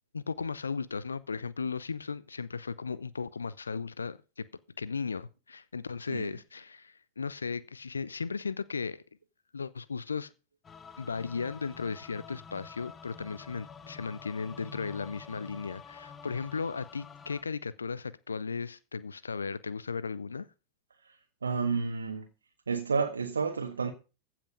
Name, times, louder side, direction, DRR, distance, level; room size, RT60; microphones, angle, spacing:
voice 1, 0.1-4.5 4.8-9.0 9.5-10.3 11.0-20.5, left 5 dB, 75° left, 0.5 m, -36 dB
sound 1, 10.6-17.4, left 6 dB, 20° left, 0.8 m, -48 dB
voice 2, 21.4-22.3 22.7-23.9, right 5 dB, 75° right, 1.2 m, -30 dB
15.0 x 5.9 x 5.4 m
figure-of-eight pair, 90°, 0 cm